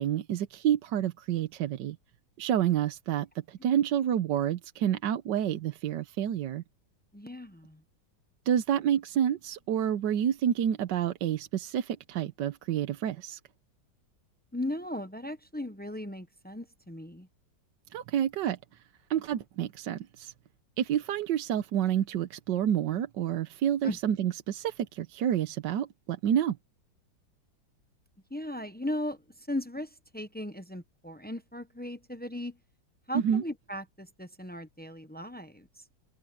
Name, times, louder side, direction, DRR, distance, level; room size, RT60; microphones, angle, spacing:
voice 1, 0.0-2.0 2.4-6.6 8.5-13.4 17.9-18.8 19.1-20.3 20.8-26.6 33.1-33.4, right 10 dB, 80° right, 1.5 m, -29 dB
voice 2, 7.1-7.8 14.5-17.3 23.8-24.0 28.3-32.6 33.1-35.7, left 1 dB, 15° left, 0.3 m, -37 dB
omnidirectional pair, 1.9 m